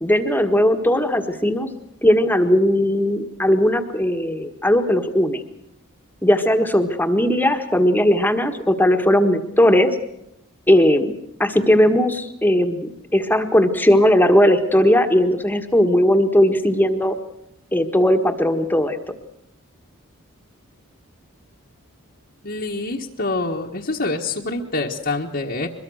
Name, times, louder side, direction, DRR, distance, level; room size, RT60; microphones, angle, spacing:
voice 1, 0.0-1.7 2.0-5.4 6.2-9.9 10.7-11.1 11.4-17.1 17.7-19.0, equal, 10° left, 7 dB, 1.5 m, -18 dB
voice 2, 22.4-25.7, left 2 dB, 50° left, -2 dB, 1.6 m, -26 dB
23.5 x 22.0 x 6.4 m, 0.81 s
head